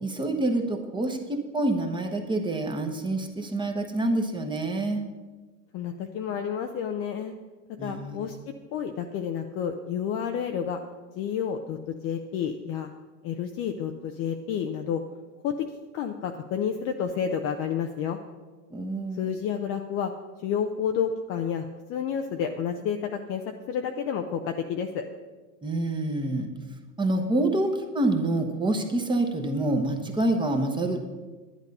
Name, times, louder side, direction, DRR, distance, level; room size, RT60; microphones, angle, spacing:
voice 1, 0.0-5.0 7.8-8.3 18.7-19.4 25.6-26.5 27.0-31.0, right 2 dB, 10° right, 4 dB, 1.0 m, -27 dB
voice 2, 5.7-7.3 7.8-10.8 11.2-12.9 13.2-15.0 15.4-15.7 15.9-18.2 19.1-20.1 20.4-23.4 23.7-25.1, left 7 dB, 30° left, 5 dB, 0.5 m, -30 dB
11.0 x 10.0 x 5.4 m, 1.3 s
supercardioid pair, 135°, 49 cm